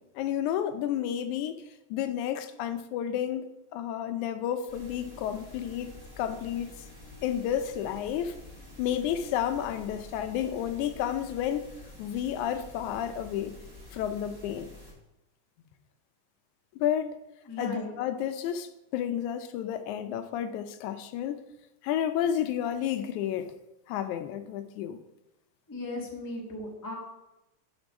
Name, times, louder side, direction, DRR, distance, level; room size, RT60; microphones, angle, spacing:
voice 1, 0.0-1.6 1.9-6.7 7.2-8.3 8.8-11.7 12.0-13.6 13.9-14.7 16.8-17.2 17.6-21.4 21.8-23.5 23.9-25.0, left 10 dB, 85° left, 2.0 m, -31 dB
sound 1, 4.7-14.9, left 2 dB, 10° right, 1.4 m, -48 dB
voice 2, 17.5-17.9 25.7-26.9, left 2 dB, 25° left, 0.4 m, -36 dB
6.0 x 5.2 x 6.1 m
omnidirectional pair, 3.4 m